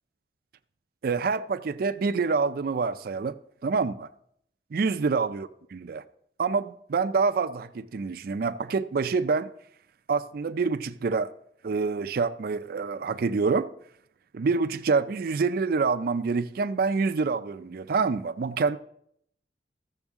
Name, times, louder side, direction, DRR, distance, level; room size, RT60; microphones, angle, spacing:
voice 1, 1.0-3.3 3.6-4.1 4.7-6.0 6.4-9.5 10.1-11.3 11.6-13.7 14.3-18.8, right 4 dB, 50° right, 0.4 m, -26 dB
14.0 x 7.1 x 3.6 m
head